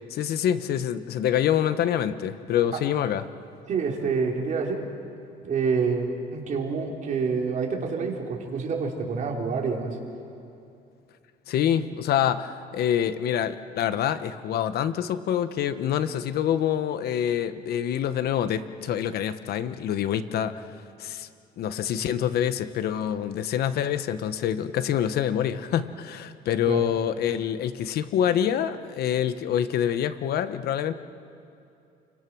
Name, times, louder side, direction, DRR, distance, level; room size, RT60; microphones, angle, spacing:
voice 1, 0.1-3.3 11.5-20.6 21.0-21.3 21.6-30.9, left 10 dB, 70° left, 11 dB, 1.2 m, -26 dB
voice 2, 3.7-4.8 5.4-10.0 26.7-26.9, right 5 dB, 50° right, 0 dB, 4.1 m, -27 dB
29.0 x 24.5 x 6.3 m, 2.6 s
cardioid pair, 110°, 17 cm